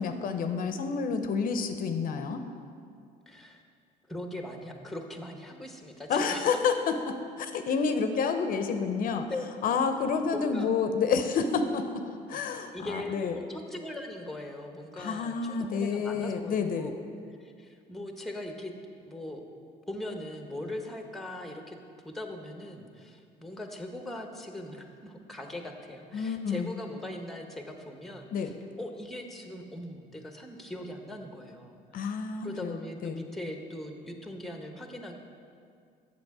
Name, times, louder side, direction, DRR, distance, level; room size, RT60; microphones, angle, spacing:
voice 1, 0.0-2.4 6.1-6.7 7.4-9.2 9.6-11.8 12.3-13.4 15.0-16.9 26.1-26.7 28.3-28.6 31.9-33.2, left 5 dB, 55° left, 7 dB, 0.6 m, -29 dB
voice 2, 3.3-3.6 4.1-6.5 9.3-9.8 10.2-10.7 12.3-12.4 12.7-17.1 17.4-18.7 19.0-19.4 19.9-21.8 22.0-32.1 32.4-35.2, left 1 dB, ahead, 4 dB, 0.8 m, -40 dB
8.0 x 6.5 x 4.7 m, 2.3 s
cardioid pair, 110°, 17 cm